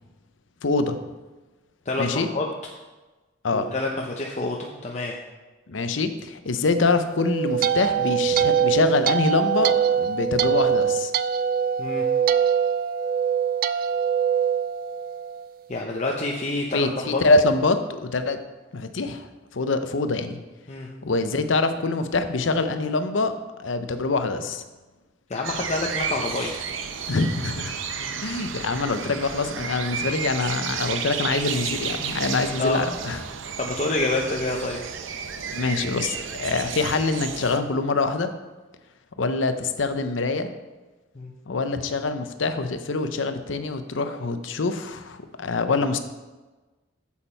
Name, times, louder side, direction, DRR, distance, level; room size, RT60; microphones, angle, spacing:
voice 1, 0.6-1.0 2.0-2.3 3.4-3.7 5.7-11.1 16.7-18.4 18.7-19.2 19.5-20.4 21.0-23.3 23.6-24.6 27.1-27.7 28.2-33.2 35.5-38.3 39.2-40.5 41.5-46.0, left 3 dB, 75° left, 9 dB, 0.7 m, -24 dB
voice 2, 1.9-2.5 3.5-5.2 11.8-12.1 15.7-17.2 20.7-20.9 25.3-26.5 28.0-28.1 32.6-33.0 33.6-34.8 41.2-41.3, left 2 dB, 35° left, -1 dB, 0.7 m, -27 dB
sound 1, 7.1-15.5, right 8 dB, 50° right, 0.3 m, -23 dB
sound 2, 25.4-37.6, right 6 dB, 80° right, 0.7 m, -32 dB
8.2 x 7.3 x 4.5 m, 1.2 s
head